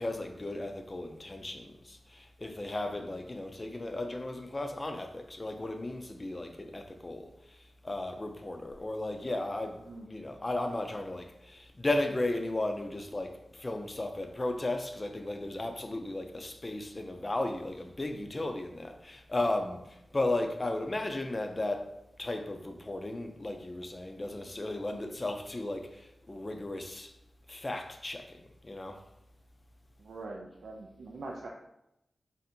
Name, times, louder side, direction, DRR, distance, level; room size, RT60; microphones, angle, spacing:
voice 1, 0.0-21.9 22.2-27.1 27.5-29.0, left 2 dB, 30° left, 0.5 m, -35 dB
voice 2, 30.0-31.5, right 2 dB, 80° right, 0.4 m, -43 dB
3.5 x 2.6 x 4.2 m
wide cardioid pair, 90°, 0 cm